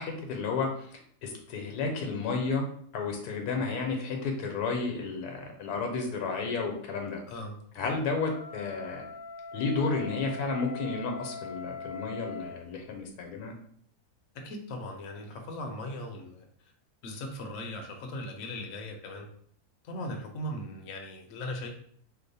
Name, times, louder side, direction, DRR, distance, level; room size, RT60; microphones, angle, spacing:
voice 1, 0.0-2.7 2.9-7.2 7.8-9.0 9.5-13.5, left 4 dB, 80° left, 3 dB, 1.2 m, -32 dB
voice 2, 7.3-7.6 14.3-16.4 17.0-19.3 19.8-21.7, left 1 dB, 65° left, 2 dB, 0.9 m, -38 dB
Wind instrument woodwind instrument, 8.0-12.6, left 4 dB, 25° right, 1.2 m, -42 dB
2.9 x 2.1 x 4.0 m, 0.62 s
omnidirectional pair, 1.7 m